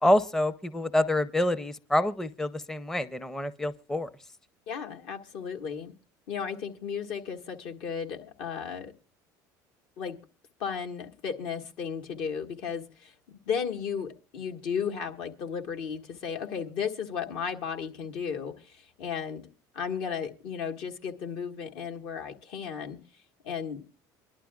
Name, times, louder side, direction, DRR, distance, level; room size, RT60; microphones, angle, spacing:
voice 1, 0.0-4.1, left 1 dB, 5° left, 14 dB, 0.6 m, -27 dB
voice 2, 4.7-5.9 6.3-8.9 10.0-10.2 10.6-19.5 19.7-23.0 23.4-23.8, left 7 dB, 70° left, 4 dB, 1.7 m, -34 dB
24.5 x 11.5 x 2.4 m, 0.32 s
supercardioid pair, 90°, 9 cm